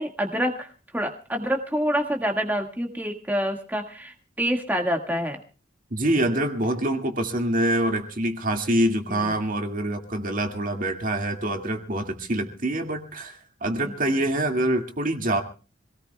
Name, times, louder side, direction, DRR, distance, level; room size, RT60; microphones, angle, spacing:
voice 1, 0.0-5.4 9.1-9.3 13.8-13.9, equal, 10° right, 3 dB, 1.8 m, -27 dB
voice 2, 5.9-15.4, right 1 dB, 45° right, 4 dB, 2.1 m, -25 dB
25.5 x 18.0 x 2.3 m, 0.35 s
head